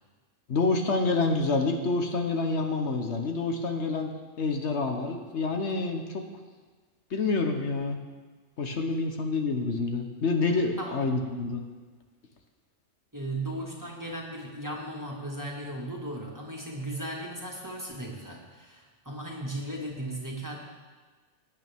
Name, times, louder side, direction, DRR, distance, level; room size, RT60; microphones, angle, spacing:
voice 1, 0.5-4.1 4.4-6.2 7.1-8.0 8.6-11.6, left 3 dB, 70° left, 3 dB, 1.4 m, -27 dB
voice 2, 13.1-20.6, right 1 dB, 15° right, -3 dB, 1.9 m, -36 dB
19.5 x 8.8 x 3.6 m, 1.4 s
omnidirectional pair, 1.2 m